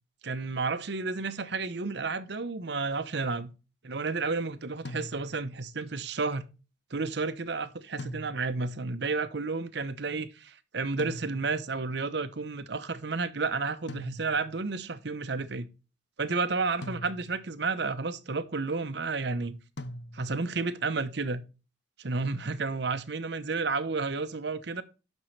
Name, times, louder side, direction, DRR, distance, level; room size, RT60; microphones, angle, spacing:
voice 1, 0.2-3.5 3.8-6.5 6.9-15.7 16.2-19.6 20.1-21.4 22.0-24.8, right 4 dB, 65° right, 0.8 m, -31 dB
sound 1, 4.9-5.6 8.0-8.7 11.0-11.8 13.9-14.6 16.8-17.6 19.8-20.6, left 1 dB, 70° left, 0.9 m, -42 dB
12.0 x 5.4 x 3.2 m
head